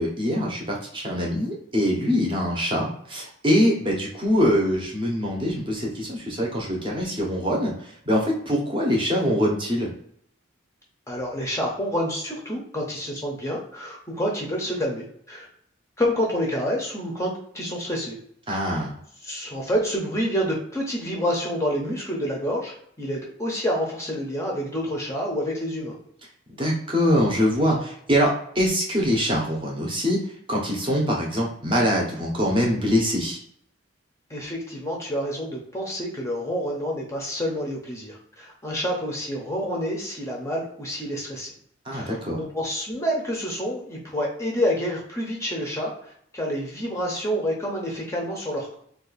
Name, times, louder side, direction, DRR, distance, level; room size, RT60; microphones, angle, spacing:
voice 1, 0.0-7.7 8.1-9.9 18.5-18.9 26.6-30.2 30.5-33.4 41.9-42.4, equal, 25° right, -2 dB, 0.7 m, -23 dB
voice 2, 11.1-15.5 16.0-18.2 18.5-18.9 19.2-26.0 34.3-41.5 41.9-48.8, equal, 15° left, -2 dB, 0.6 m, -28 dB
2.6 x 2.3 x 3.9 m, 0.67 s
head